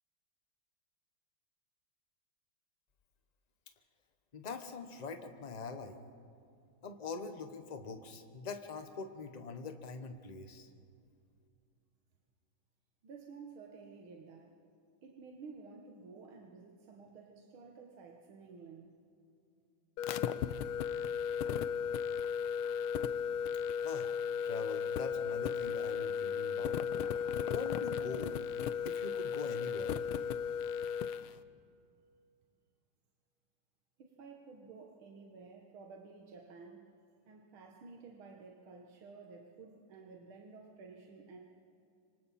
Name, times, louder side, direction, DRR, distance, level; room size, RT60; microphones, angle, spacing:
voice 1, 4.3-6.0 6.8-10.7 23.8-26.8 27.5-28.3 28.8-29.9, left 4 dB, 25° left, 7 dB, 0.9 m, -43 dB
voice 2, 13.0-14.5 15.0-19.0 34.0-36.9 37.3-41.4, right 4 dB, 80° right, 0 dB, 2.2 m, -52 dB
sound 1, 20.0-31.3, left 7 dB, 85° left, 1.6 m, -35 dB
26.5 x 25.0 x 4.3 m, 2.5 s
omnidirectional pair, 2.3 m